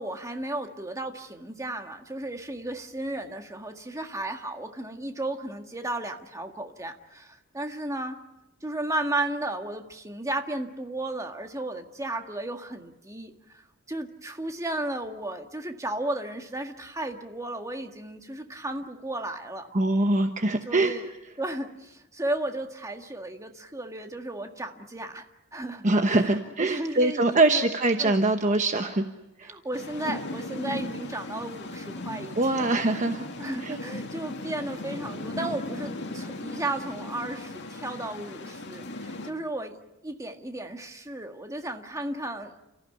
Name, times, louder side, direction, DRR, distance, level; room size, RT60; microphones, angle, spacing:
voice 1, 0.0-8.2 8.6-13.6 13.9-19.7 20.7-21.1 21.4-25.2 25.5-26.3 26.6-27.7 28.0-28.2 29.4-32.7 33.4-39.8 40.0-42.5, right 1 dB, 15° right, 5 dB, 1.8 m, -34 dB
voice 2, 19.7-21.0 25.8-29.0 29.4-29.5 32.4-33.2 33.6-33.8, right 2 dB, 35° right, 6 dB, 1.1 m, -23 dB
sound 1, 29.7-39.3, left 2 dB, 55° left, 2.4 m, -37 dB
30.0 x 15.0 x 10.0 m, 0.98 s
head